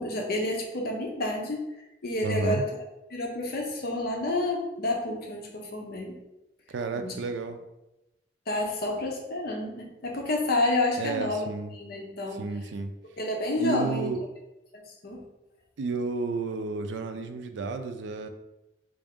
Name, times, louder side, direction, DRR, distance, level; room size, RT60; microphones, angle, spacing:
voice 1, 0.0-1.7 2.0-2.7 3.1-6.2 6.9-7.2 8.5-11.5 11.7-12.4 13.2-14.1 15.0-15.2, left 2 dB, 60° left, 1 dB, 0.7 m, -29 dB
voice 2, 2.2-2.6 6.7-7.6 11.0-11.7 12.3-12.9 13.6-14.2 15.8-18.3, right 3 dB, 85° right, 7 dB, 0.4 m, -31 dB
3.4 x 2.5 x 3.5 m, 0.94 s
head